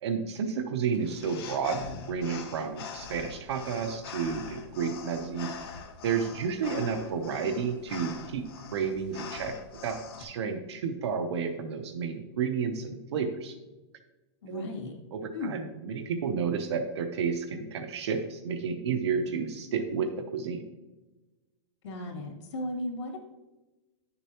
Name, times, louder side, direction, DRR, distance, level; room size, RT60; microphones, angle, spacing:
voice 1, 0.0-5.6 6.0-8.5 8.7-9.5 9.8-13.5 14.5-14.7 15.1-20.6, right 6 dB, 65° right, 6 dB, 0.8 m, -31 dB
sound 1, 0.9-10.2, left 5 dB, 55° left, 1.3 m, -43 dB
voice 2, 14.4-15.0 15.3-15.6 21.8-23.2, left 1 dB, 85° left, 1 dB, 2.4 m, -35 dB
10.0 x 6.8 x 2.9 m, 1.1 s
supercardioid pair, 175°, 15 cm